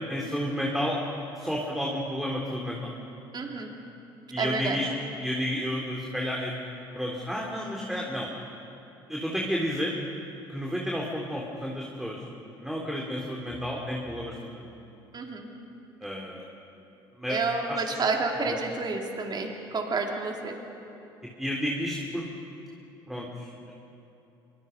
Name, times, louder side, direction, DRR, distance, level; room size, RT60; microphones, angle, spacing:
voice 1, 0.1-1.0 1.4-2.9 4.3-4.9 5.2-6.6 6.9-8.3 9.1-9.9 10.5-12.2 12.6-14.6 16.0-16.4 17.1-17.8 21.4-22.2 23.1-23.7, equal, 5° right, -2 dB, 3.8 m, -31 dB
voice 2, 3.3-3.7 4.4-4.8 15.1-15.5 17.3-20.6, right 4 dB, 40° right, 1 dB, 3.8 m, -30 dB
25.5 x 24.0 x 5.5 m, 2.8 s
hypercardioid pair, 65°, 12 cm